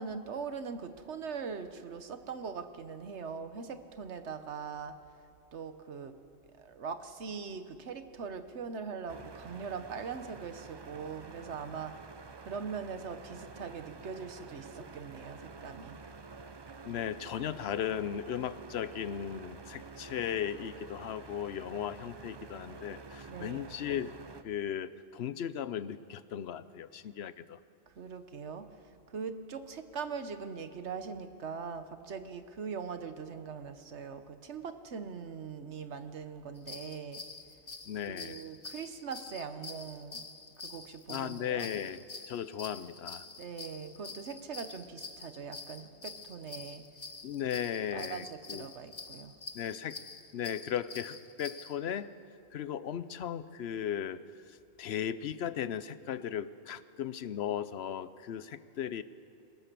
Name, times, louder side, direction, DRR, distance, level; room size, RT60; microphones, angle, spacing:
voice 1, 0.0-5.0 5.5-6.1 6.6-12.0 12.4-16.0 23.3-23.8 28.0-28.7 29.1-37.2 38.1-40.2 40.6-41.7 43.4-46.8 47.9-49.3, right 5 dB, 85° right, 9 dB, 1.4 m, -41 dB
sound 1, 9.1-24.4, right 4 dB, 30° right, 0.5 m, -49 dB
voice 2, 16.8-24.1 24.4-27.6 37.9-38.4 41.1-43.3 47.2-48.7 49.5-50.0 50.3-52.1 52.5-59.0, left 9 dB, 70° left, 15 dB, 0.9 m, -36 dB
sound 2, 36.6-51.7, left 4 dB, 30° left, 0.8 m, -47 dB
23.0 x 18.0 x 6.9 m, 2.4 s
omnidirectional pair, 1.1 m